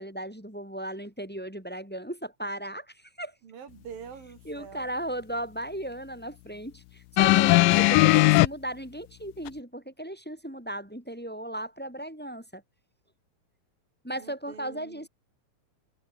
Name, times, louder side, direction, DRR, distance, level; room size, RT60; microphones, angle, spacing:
voice 1, 0.0-3.3 4.4-12.6 14.0-15.1, right 1 dB, 5° left, 6.3 m, -36 dB
voice 2, 3.4-4.9 14.2-15.0, right 7 dB, 80° right, 4.8 m, -45 dB
sound 1, 7.2-8.5 9.5-9.6, left 20 dB, 80° left, 2.2 m, -18 dB
omnidirectional pair, 4.0 m